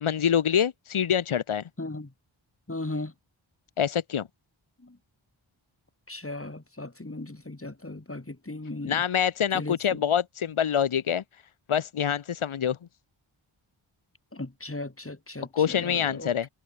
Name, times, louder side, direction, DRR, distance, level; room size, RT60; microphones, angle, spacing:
voice 1, 0.0-1.6 3.8-4.3 8.9-11.2 11.7-12.8 15.5-16.5, left 8 dB, 85° left, 0.9 m, -25 dB
voice 2, 1.8-2.1 2.7-3.1 4.8-5.0 6.1-9.0 9.5-10.0 14.3-16.3, left 2 dB, 25° left, 2.9 m, -37 dB
wide cardioid pair, 40°, 48 cm